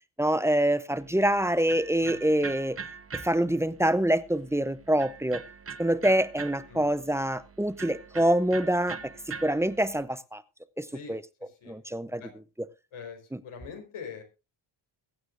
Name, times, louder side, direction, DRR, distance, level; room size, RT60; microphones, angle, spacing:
voice 1, 0.2-2.8 3.1-5.4 5.8-9.0 9.4-10.4 10.8-11.2 11.7-12.2, right 1 dB, 5° right, 14 dB, 0.6 m, -25 dB
Electric guitar, 0.9-10.0, right 6 dB, 30° right, 0.9 m, -43 dB
voice 2, 10.9-11.8 12.2-12.3 12.9-14.2, left 6 dB, 75° left, 4 dB, 4.5 m, -44 dB
22.0 x 9.5 x 2.5 m, 0.29 s
wide cardioid pair, 175°, 49 cm